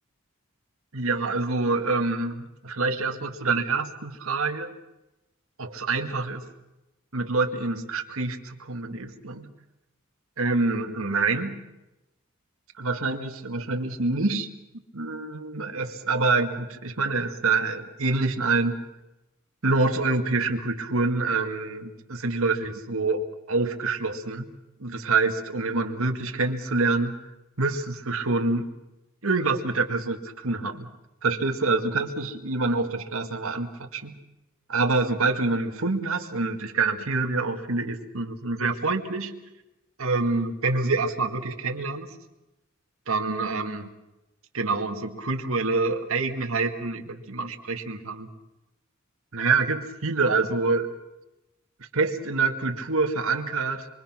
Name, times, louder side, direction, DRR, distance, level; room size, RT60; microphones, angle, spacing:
voice 1, 0.9-4.7 5.6-6.5 7.1-9.5 10.4-11.7 12.8-14.5 14.9-18.8 19.6-24.5 24.8-27.1 27.6-28.7 29.2-30.9 31.2-34.2 34.7-39.4 40.0-42.2 43.1-43.9 44.5-48.3 49.3-50.9 51.9-53.9, right 3 dB, 85° right, 4 dB, 2.0 m, -26 dB
26.5 x 23.5 x 6.0 m, 0.97 s
head